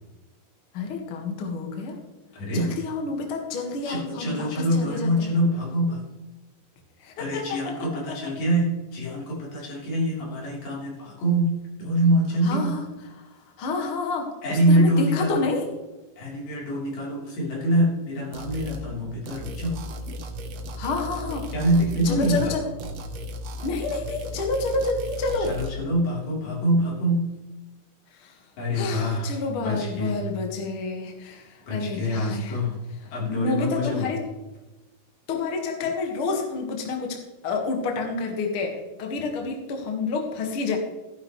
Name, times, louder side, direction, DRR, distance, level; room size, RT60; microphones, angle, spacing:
voice 1, 0.7-2.0 2.5-5.3 7.0-8.2 12.4-12.8 13.6-15.7 20.8-21.5 22.0-22.7 23.6-25.5 28.1-28.3 28.7-32.6 33.3-34.2 35.3-37.2 37.4-40.8, left 3 dB, 45° left, 2 dB, 2.1 m, -29 dB
voice 2, 2.3-2.7 3.8-6.0 7.2-11.5 11.8-12.8 14.4-15.4 16.2-19.8 21.5-22.5 25.4-27.2 28.6-30.2 31.7-32.8 33.1-34.1, equal, 85° left, -4 dB, 5.5 m, -25 dB
sound 1, 18.3-18.9 19.3-22.5 22.8-25.7, equal, 65° right, 1.6 m, -35 dB
14.5 x 11.5 x 3.2 m, 1.1 s
omnidirectional pair, 4.2 m